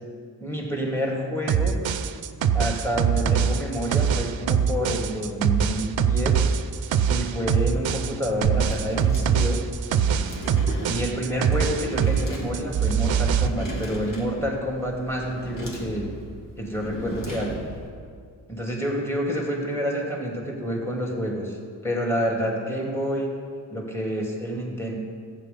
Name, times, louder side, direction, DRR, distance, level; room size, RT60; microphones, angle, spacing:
voice 1, 0.4-1.8 2.5-6.4 7.1-9.7 10.8-16.1 16.6-17.5 18.5-21.6 21.8-23.3 23.7-24.9, equal, 5° left, -1 dB, 2.7 m, -28 dB
sound 1, 1.5-12.3 12.5-13.5, right 7 dB, 85° right, 0.7 m, -23 dB
sound 2, 8.3-17.9, equal, 45° left, 3.0 m, -36 dB
14.5 x 8.8 x 5.4 m, 2.2 s
cardioid pair, 85°, 44 cm